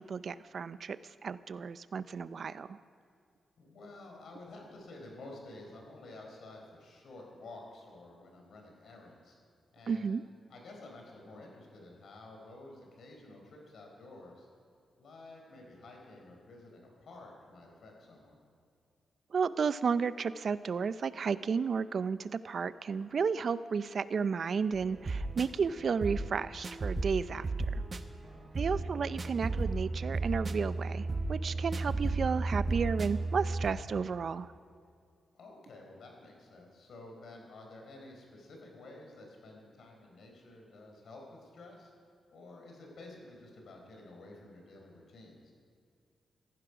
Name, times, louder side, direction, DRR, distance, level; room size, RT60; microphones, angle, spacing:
voice 1, 0.1-1.0 1.2-2.8 9.9-10.2 19.3-27.5 28.6-34.5, right 5 dB, 55° right, 15 dB, 0.5 m, -32 dB
voice 2, 3.6-9.4 9.7-10.2 10.5-14.5 15.0-18.4 28.2-28.8 35.3-41.9 42.3-45.5, left 2 dB, 70° left, 1 dB, 4.2 m, -51 dB
sound 1, 24.7-33.7, right 3 dB, 35° right, 0.8 m, -34 dB
15.0 x 15.0 x 6.0 m, 2.3 s
cardioid pair, 115°, 0 cm